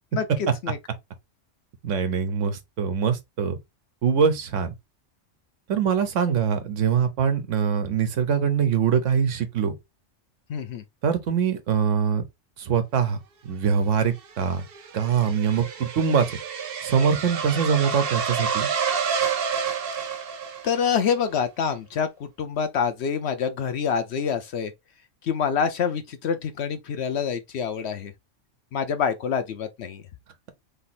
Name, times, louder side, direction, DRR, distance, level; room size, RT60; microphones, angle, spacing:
voice 1, 1.8-3.6 4.0-4.7 5.7-9.7 11.0-12.2 12.6-13.2 13.4-14.6 14.9-16.4 16.8-18.7, right 7 dB, 85° right, 1.2 m, -23 dB
voice 2, 10.5-10.8 20.6-24.7 25.2-28.1 28.7-30.0, left 7 dB, 65° left, 0.8 m, -26 dB
sound 1, 14.0-21.0, right 6 dB, 55° right, 0.9 m, -29 dB
3.4 x 2.9 x 4.1 m
omnidirectional pair, 1.3 m